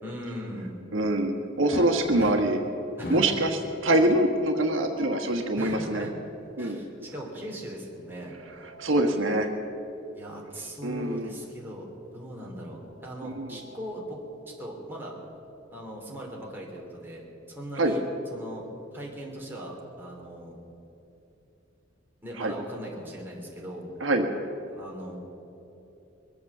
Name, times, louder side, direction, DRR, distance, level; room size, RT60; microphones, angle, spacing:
voice 1, 0.0-0.8 2.2-2.4 3.0-3.3 5.6-6.1 6.6-8.4 10.1-11.9 12.1-14.2 14.6-15.1 15.7-18.0 18.3-18.7 18.9-20.5 22.2-23.9 24.7-25.2, right 1 dB, 10° right, -3 dB, 2.9 m, -39 dB
voice 2, 0.9-2.6 3.1-6.1 6.6-6.8 8.8-9.5 10.8-11.3 13.2-13.5 17.8-17.9 22.4-22.5 24.0-24.3, right 1 dB, 85° right, 3 dB, 1.3 m, -24 dB
sound 1, 1.7-2.6 3.0-3.5 4.7-5.5 8.1-9.2 10.6-10.8 11.1-11.2 12.8-14.0, left 1 dB, 55° left, 1.1 m, -42 dB
22.0 x 8.3 x 7.2 m, 2.9 s
head